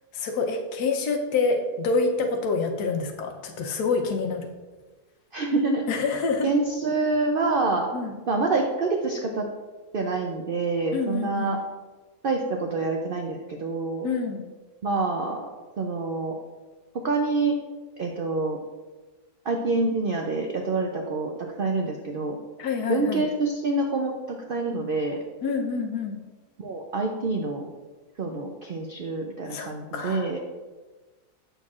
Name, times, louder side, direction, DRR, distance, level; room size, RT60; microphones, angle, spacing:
voice 1, 0.1-4.5 5.9-6.5 7.9-8.1 10.9-11.5 14.0-14.4 22.6-23.2 25.4-26.2 29.5-30.3, left 4 dB, 85° left, 4 dB, 1.3 m, -27 dB
voice 2, 5.3-5.8 6.4-7.9 8.3-9.5 9.9-11.6 12.2-14.1 14.8-15.5 15.8-16.4 17.0-17.6 18.0-18.6 19.4-22.4 22.9-25.2 26.6-27.7 28.2-30.4, right 3 dB, 80° right, 2 dB, 0.4 m, -26 dB
7.7 x 6.4 x 2.4 m, 1.3 s
omnidirectional pair, 1.7 m